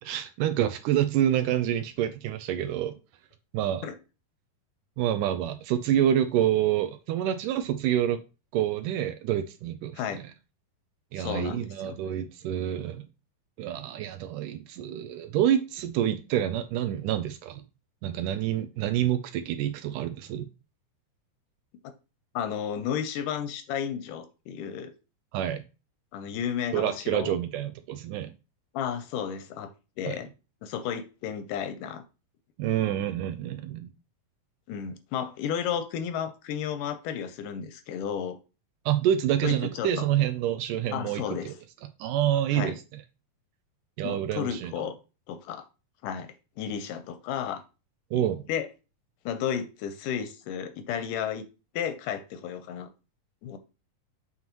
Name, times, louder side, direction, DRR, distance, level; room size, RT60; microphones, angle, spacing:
voice 1, 0.0-3.0 3.5-3.9 5.0-8.2 8.5-10.0 11.1-13.1 13.6-17.6 18.0-20.5 25.3-25.6 26.7-28.3 30.1-30.2 32.6-33.9 38.9-41.5 42.0-43.0 44.0-44.9 48.1-48.4, right 11 dB, 80° right, 2.0 m, -27 dB
voice 2, 11.2-12.0 22.4-24.9 26.1-27.4 28.7-29.7 30.0-30.3 30.6-32.0 34.7-38.4 39.4-39.9 40.9-41.5 42.5-42.8 44.0-44.9 45.3-45.6 46.0-47.6 48.1-48.7 49.3-51.5 51.7-52.9 53.4-53.6, left 8 dB, 80° left, 2.1 m, -33 dB
7.9 x 5.5 x 3.0 m
omnidirectional pair, 4.0 m